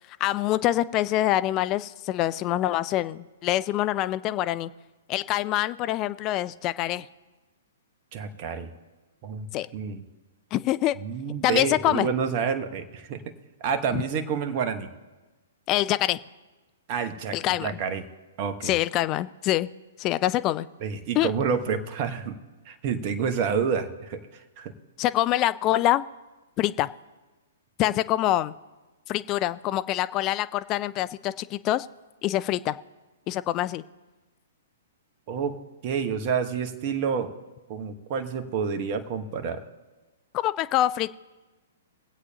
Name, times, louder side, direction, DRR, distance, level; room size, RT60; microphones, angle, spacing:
voice 1, 0.2-4.7 5.1-7.1 9.5-9.7 10.5-11.0 11.4-12.1 13.9-14.0 15.7-16.2 17.3-17.7 18.6-19.7 20.0-20.7 21.2-21.3 25.0-26.0 26.6-26.9 27.8-28.5 29.1-31.9 32.2-32.8 33.3-33.8 40.3-41.1, left 14 dB, 30° left, 15 dB, 0.4 m, -25 dB
voice 2, 8.1-8.7 9.2-9.5 9.7-10.0 11.0-13.2 13.6-14.9 16.9-18.0 18.4-18.7 20.8-22.4 22.7-24.7 35.3-35.6 35.8-37.3 37.7-39.6, right 6 dB, 40° right, 8 dB, 1.2 m, -28 dB
23.5 x 8.2 x 2.9 m, 1.2 s
figure-of-eight pair, 115°, 0 cm